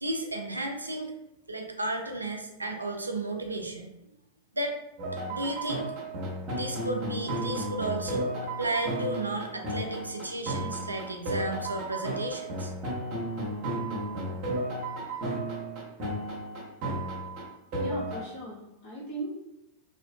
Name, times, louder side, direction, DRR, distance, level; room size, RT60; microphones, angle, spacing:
voice 1, 0.0-1.2 1.5-3.9 4.5-4.8 5.3-5.9 6.5-12.7, right 2 dB, 80° right, 3 dB, 0.3 m, -33 dB
sound 1, 5.0-18.2, right 1 dB, 40° right, 0.9 m, -33 dB
voice 2, 17.8-19.3, right 1 dB, 40° left, -6 dB, 1.1 m, -38 dB
2.4 x 2.2 x 2.3 m, 0.87 s
figure-of-eight pair, 90°, 0 cm